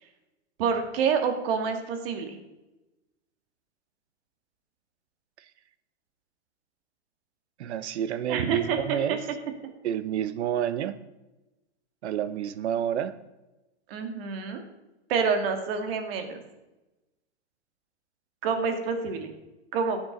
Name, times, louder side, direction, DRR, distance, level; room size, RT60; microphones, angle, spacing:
voice 1, 0.6-2.4 8.3-9.2 13.9-14.6 15.1-16.4 18.4-19.3 19.7-20.0, right 5 dB, 55° right, 6 dB, 2.2 m, -27 dB
voice 2, 7.6-9.2 9.8-11.0 12.0-13.2, right 10 dB, 75° right, 15 dB, 0.9 m, -29 dB
15.0 x 8.8 x 4.0 m, 1.0 s
hypercardioid pair, 120°, 34 cm